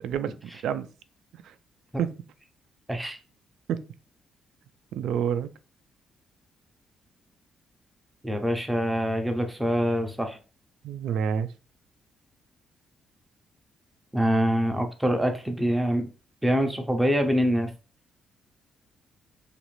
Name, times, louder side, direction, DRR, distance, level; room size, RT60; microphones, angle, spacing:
voice 1, 0.0-0.3 0.6-0.9 2.0-2.1 3.7-3.8 4.9-5.5 10.8-11.5, right 8 dB, 80° right, 0.3 m, -27 dB
voice 2, 8.2-10.4 14.1-16.1 16.4-17.7, equal, 5° right, 0.5 m, -25 dB
3.0 x 2.4 x 3.0 m
cardioid pair, 155°, 0 cm